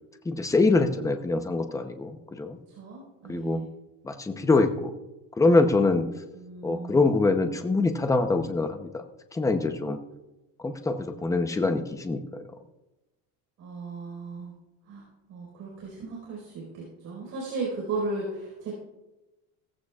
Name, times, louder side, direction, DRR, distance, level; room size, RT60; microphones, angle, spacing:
voice 1, 0.2-2.6 3.3-3.6 4.0-4.9 5.4-6.1 6.6-9.0 9.3-10.0 10.6-12.5, left 3 dB, 10° left, 6 dB, 0.7 m, -24 dB
voice 2, 2.7-3.7 6.3-7.1 13.6-14.5 14.9-18.7, right 3 dB, 45° right, -3 dB, 4.6 m, -36 dB
16.5 x 15.0 x 2.4 m, 1.0 s
cardioid pair, 155°, 37 cm